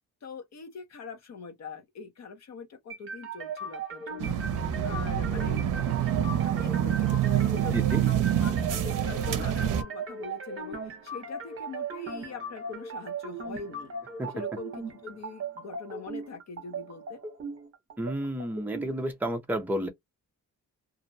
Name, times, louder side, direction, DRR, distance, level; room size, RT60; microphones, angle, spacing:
voice 1, 0.2-4.4 4.8-5.6 6.4-13.9 14.3-17.2, left 4 dB, 55° left, 0.7 m, -43 dB
sound 1, 2.9-18.9, right 4 dB, 40° right, 0.8 m, -38 dB
sound 2, 4.2-9.8, right 10 dB, 70° right, 0.5 m, -27 dB
voice 2, 7.7-8.0 14.2-14.3 18.0-19.9, right 1 dB, 5° right, 0.4 m, -31 dB
2.5 x 2.0 x 2.5 m
wide cardioid pair, 175°, 32 cm